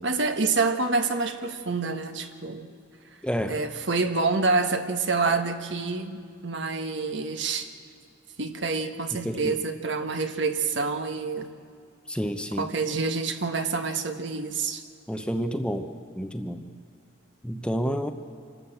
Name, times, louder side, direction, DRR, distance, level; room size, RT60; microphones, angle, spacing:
voice 1, 0.0-2.7 3.5-7.7 8.4-11.5 12.6-14.8, right 4 dB, 65° right, 7 dB, 1.4 m, -27 dB
voice 2, 3.2-3.6 9.2-9.6 12.1-12.7 15.1-16.7 17.4-18.1, equal, 5° left, 7 dB, 0.8 m, -29 dB
27.0 x 13.0 x 7.8 m, 2.3 s
head